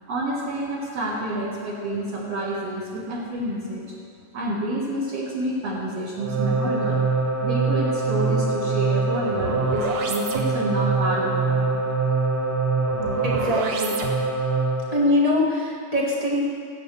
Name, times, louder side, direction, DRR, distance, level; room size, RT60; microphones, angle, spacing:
voice 1, 0.1-3.8 4.3-7.1 7.4-11.7, right 1 dB, 50° right, -7 dB, 2.7 m, -28 dB
sound 1, 6.2-15.0, right 3 dB, 65° right, 1.5 m, -24 dB
voice 2, 13.2-14.0 14.9-16.4, left 1 dB, 20° right, -4 dB, 0.9 m, -23 dB
16.5 x 9.0 x 6.7 m, 2.2 s
omnidirectional pair, 4.1 m